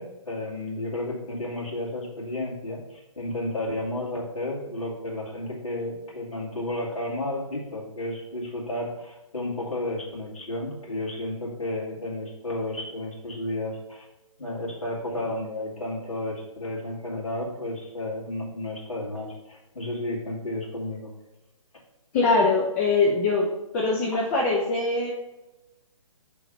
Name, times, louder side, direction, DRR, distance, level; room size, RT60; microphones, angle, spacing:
voice 1, 0.0-14.1 14.4-21.1, left 1 dB, 80° left, -4 dB, 2.2 m, -32 dB
voice 2, 22.1-25.1, left 3 dB, 25° left, -2 dB, 0.7 m, -23 dB
5.0 x 3.8 x 5.4 m, 0.97 s
figure-of-eight pair, 140°, 17 cm